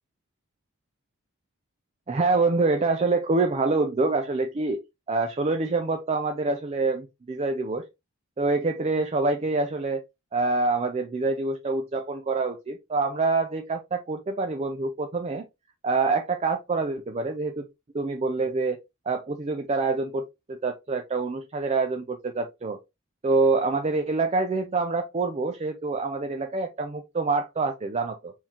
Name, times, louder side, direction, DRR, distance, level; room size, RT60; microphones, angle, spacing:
voice 1, 2.1-4.8 5.1-7.8 8.4-10.0 10.3-15.5 15.8-17.6 17.9-18.8 19.1-22.8 23.2-28.3, right 3 dB, 30° right, 0.5 m, -26 dB
4.5 x 3.6 x 2.8 m
head